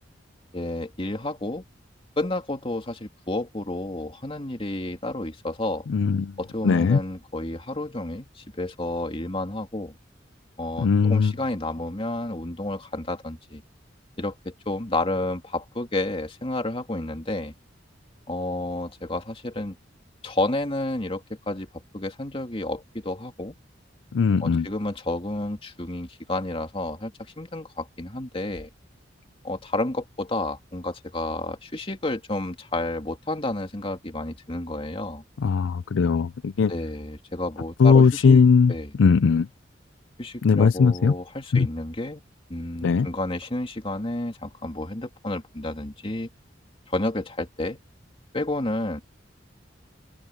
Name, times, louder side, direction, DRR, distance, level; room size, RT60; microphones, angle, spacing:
voice 1, 0.5-1.6 2.2-5.9 6.4-10.0 10.6-13.6 14.2-17.5 18.3-19.8 20.2-21.7 21.9-23.5 24.4-27.1 27.4-28.7 29.4-35.2 36.7-38.4 38.7-38.9 40.2-42.2 42.5-46.3 46.9-47.8 48.3-49.0, left 2 dB, 30° left, 2.5 m, -30 dB
voice 2, 5.9-6.4 6.6-7.0 10.8-11.3 24.1-24.7 35.4-36.7 37.8-38.7 39.0-39.5 40.4-41.1 41.5-41.7 42.8-43.1, left 5 dB, 85° left, 0.4 m, -19 dB
head